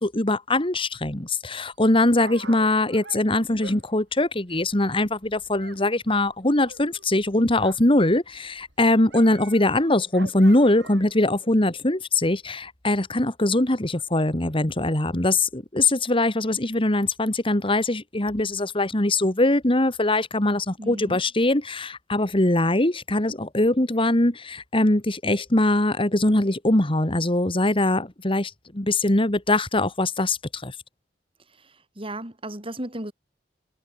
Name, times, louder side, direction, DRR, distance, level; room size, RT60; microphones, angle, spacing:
voice 1, 0.0-30.7, left 2 dB, 30° left, 2.1 m, -22 dB
Dog, 1.7-5.8 6.1-8.0 8.3-11.2 11.9-12.0, right 3 dB, 75° right, 6.5 m, -45 dB
voice 2, 20.8-21.2 31.6-33.1, right 1 dB, 30° right, 5.6 m, -35 dB
head